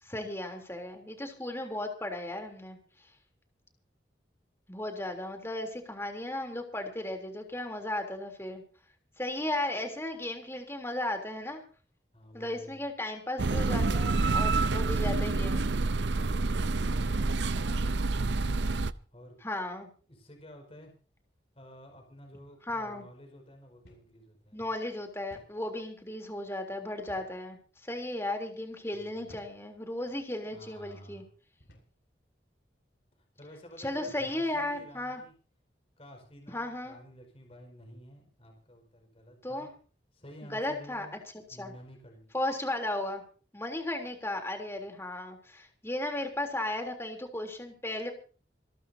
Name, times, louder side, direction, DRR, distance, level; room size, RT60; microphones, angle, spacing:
voice 1, 0.0-2.8 4.7-8.6 9.2-11.6 12.3-15.7 19.4-19.9 22.7-23.0 24.5-31.2 33.8-35.2 36.5-37.0 39.4-39.7 40.5-41.1 41.6-41.7 42.3-43.2 43.5-48.1, left 1 dB, 15° left, 4 dB, 3.4 m, -35 dB
voice 2, 12.1-12.8 16.5-18.4 19.1-19.4 20.1-20.9 21.5-24.6 28.9-29.4 30.5-31.3 33.2-35.3 36.0-39.7 40.1-41.1 41.5-42.4, equal, 35° left, 3 dB, 5.2 m, -51 dB
sound 1, 13.4-18.9, right 3 dB, 80° right, 0.7 m, -28 dB
sound 2, 23.9-24.2 24.5-24.6 25.3-25.6 27.1-27.4 28.1-28.3 29.3-29.6 30.4-30.6 31.6-32.0, equal, 65° left, 6.3 m, -57 dB
27.5 x 12.5 x 2.8 m, 0.39 s
head